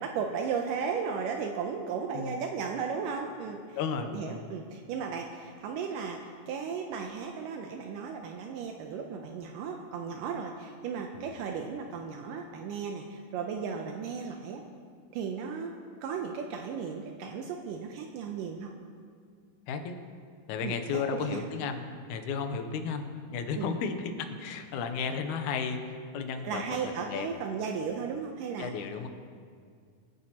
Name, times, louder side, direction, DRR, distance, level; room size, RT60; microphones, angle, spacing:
voice 1, 0.0-3.8 4.0-14.6 15.1-15.7 16.0-18.7 20.6-21.5 23.6-23.7 26.4-28.7, right 6 dB, 80° right, 2 dB, 2.3 m, -35 dB
voice 2, 3.8-4.4 11.1-11.3 19.7-20.0 20.5-25.8 26.1-26.6 27.0-27.3 28.6-29.1, left 6 dB, 75° left, 6 dB, 2.1 m, -33 dB
24.0 x 9.8 x 2.9 m, 2.1 s
omnidirectional pair, 3.9 m